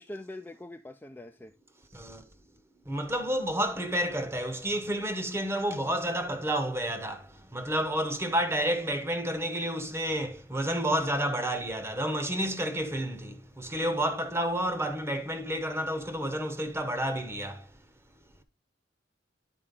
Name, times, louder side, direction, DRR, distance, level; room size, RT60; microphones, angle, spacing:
voice 1, 0.0-1.5, left 1 dB, 10° left, 0.4 m, -43 dB
voice 2, 1.9-2.3 2.8-17.7, equal, 15° right, 0.9 m, -30 dB
10.0 x 4.4 x 3.7 m
head